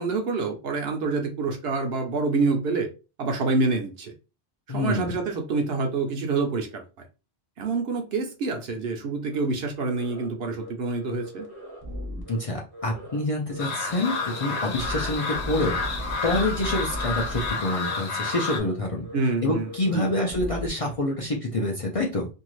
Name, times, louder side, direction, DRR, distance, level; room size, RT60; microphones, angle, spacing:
voice 1, 0.0-2.9 3.2-4.1 4.7-6.8 7.6-11.5 19.1-20.1, right 3 dB, 65° right, 0.9 m, -27 dB
voice 2, 4.7-5.2 12.3-19.1 19.4-22.3, left 1 dB, 45° left, 0.5 m, -27 dB
sound 1, 9.3-9.5 9.8-10.3 10.5-10.7 11.0-12.4 12.7-13.2 13.5-13.6 13.9-17.5 17.8-17.9 18.3-18.8 19.0-19.2 19.5-20.7, left 1 dB, 25° right, 0.7 m, -37 dB
sound 2, 13.6-18.6, left 4 dB, 85° left, 1.0 m, -30 dB
2.6 x 2.4 x 3.0 m
omnidirectional pair, 1.1 m